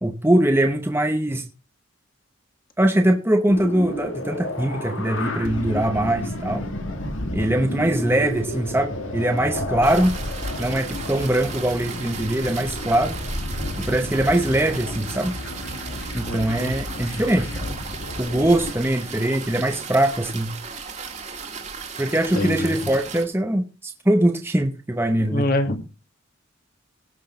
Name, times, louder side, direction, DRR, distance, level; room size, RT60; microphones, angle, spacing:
voice 1, 0.0-1.5 2.8-6.7 7.3-10.2 10.6-13.2 13.8-15.4 16.1-17.6 18.2-20.6 22.0-25.5, right 1 dB, 10° right, 0.8 m, -22 dB
sound 1, 3.5-18.7, left 1 dB, 70° left, 1.9 m, -31 dB
sound 2, 9.8-23.2, right 5 dB, 35° right, 1.9 m, -36 dB
voice 2, 16.3-16.7 22.3-22.7 25.2-25.8, left 1 dB, 45° left, 1.8 m, -25 dB
17.5 x 6.1 x 4.3 m
head